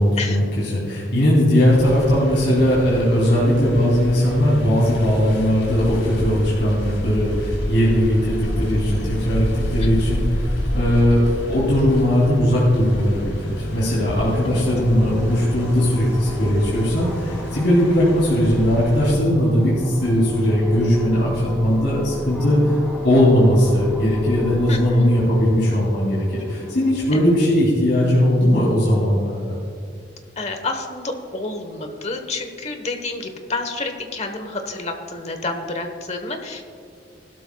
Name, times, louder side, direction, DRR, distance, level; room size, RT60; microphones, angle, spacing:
voice 1, 0.0-10.2 10.7-22.8 23.0-29.6, equal, 65° left, -6 dB, 3.1 m, -18 dB
sound 1, 1.6-19.1, equal, 85° left, 2.7 m, -29 dB
voice 2, 9.8-10.2 14.5-14.6 24.7-25.0 27.1-27.2 30.4-36.6, left 3 dB, 35° left, 6 dB, 1.1 m, -29 dB
sound 2, 14.2-27.5, equal, 5° left, 1.8 m, -34 dB
16.5 x 12.5 x 2.3 m, 2.4 s
head